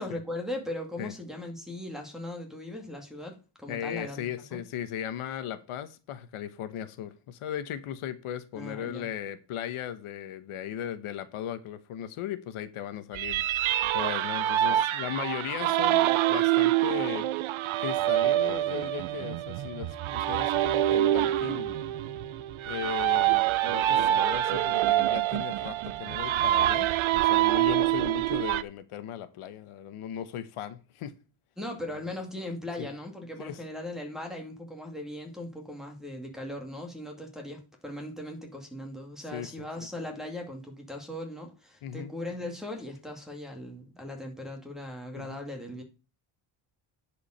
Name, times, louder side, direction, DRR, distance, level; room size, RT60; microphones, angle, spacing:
voice 1, 0.0-4.6 8.5-9.1 31.6-45.8, left 1 dB, ahead, 2.3 m, -39 dB
voice 2, 3.7-17.3 17.8-21.7 22.7-31.2 31.9-32.0 32.8-32.9 33.4-33.6 39.3-39.5 39.8-39.9 41.8-42.1 45.2-45.4, left 10 dB, 85° left, 1.1 m, -37 dB
sound 1, 13.1-28.6, right 13 dB, 70° right, 0.7 m, -26 dB
10.0 x 5.0 x 6.5 m
cardioid pair, 155°, 49 cm